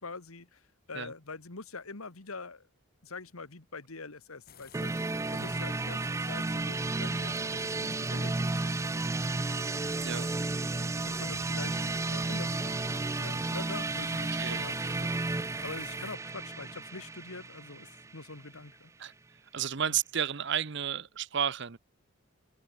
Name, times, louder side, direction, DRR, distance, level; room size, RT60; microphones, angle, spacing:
voice 1, 0.0-2.7 3.0-9.3 11.0-12.9 13.2-19.1 19.9-20.0, left 3 dB, 85° left, 1.9 m, -45 dB
sound 1, 4.5-16.2, left 6 dB, 45° left, 1.6 m, -53 dB
sound 2, 4.7-18.5, right 3 dB, 15° right, 0.3 m, -33 dB
sound 3, 9.8-15.4, left 7 dB, 70° left, 0.6 m, -52 dB
voice 2, 14.3-14.7 19.0-19.1 19.5-21.8, right 8 dB, 55° right, 0.8 m, -32 dB
open air
head